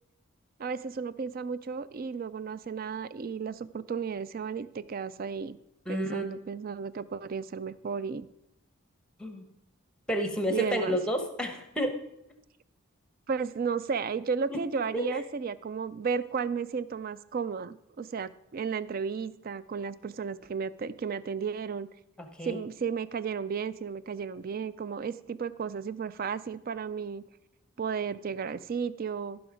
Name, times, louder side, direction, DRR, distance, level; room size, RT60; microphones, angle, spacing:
voice 1, 0.6-5.6 5.9-8.3 10.5-11.0 13.3-21.9 22.4-27.2 27.8-29.4, right 6 dB, 45° right, 16 dB, 0.4 m, -33 dB
voice 2, 5.9-6.2 9.2-9.4 10.1-12.0 14.5-14.6 14.9-15.0 22.2-22.6, equal, 5° left, 6 dB, 1.1 m, -30 dB
14.5 x 6.0 x 5.0 m, 0.83 s
head